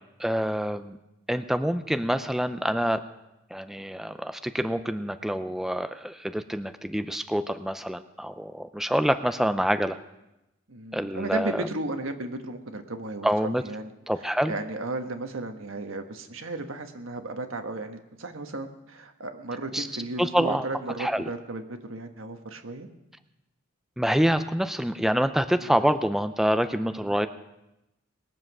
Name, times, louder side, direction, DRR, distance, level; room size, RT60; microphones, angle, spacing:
voice 1, 0.2-1.0 1.3-3.0 3.5-10.0 10.9-11.6 13.2-13.6 14.1-14.5 19.7-19.9 20.2-20.7 21.0-21.3 24.0-27.3, equal, ahead, 9 dB, 0.5 m, -26 dB
voice 2, 10.7-13.9 14.5-22.9 25.5-25.7 27.0-27.2, right 2 dB, 85° right, 6 dB, 1.4 m, -35 dB
20.5 x 7.6 x 6.1 m, 0.91 s
head